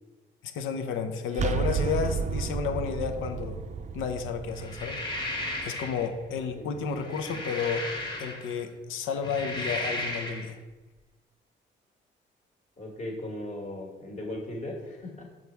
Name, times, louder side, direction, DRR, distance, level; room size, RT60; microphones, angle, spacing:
voice 1, 0.4-3.6 3.9-5.0 5.6-7.9 8.2-10.6, left 6 dB, 85° left, 7 dB, 0.8 m, -31 dB
sound 1, 1.3-7.0, right 5 dB, 35° right, 0.4 m, -33 dB
sound 2, 4.6-6.1 6.9-8.6 9.1-10.5, left 1 dB, 20° left, 1.5 m, -35 dB
voice 2, 6.6-7.0 7.3-7.4 12.8-15.3, left 1 dB, 35° left, -1 dB, 1.8 m, -38 dB
6.5 x 4.2 x 4.5 m, 1.2 s
cardioid pair, 90°, 20 cm